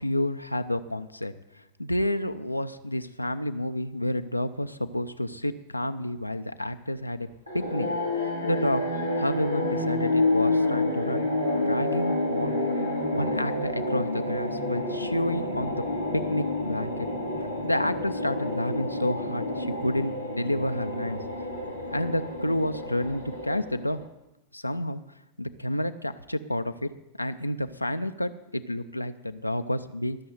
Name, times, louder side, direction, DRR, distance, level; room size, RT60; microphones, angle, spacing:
voice 1, 0.0-1.3 1.8-7.3 7.5-7.9 8.2-8.8 9.2-11.2 11.5-12.6 13.1-15.8 16.1-16.9 17.6-21.2 21.9-24.0 24.5-25.0 25.4-26.9 27.2-30.2, left 1 dB, 85° left, 9 dB, 0.5 m, -29 dB
sound 1, 7.5-24.0, left 2 dB, 85° right, 1.9 m, -29 dB
13.5 x 6.4 x 7.8 m, 0.92 s
figure-of-eight pair, 90°, 0 cm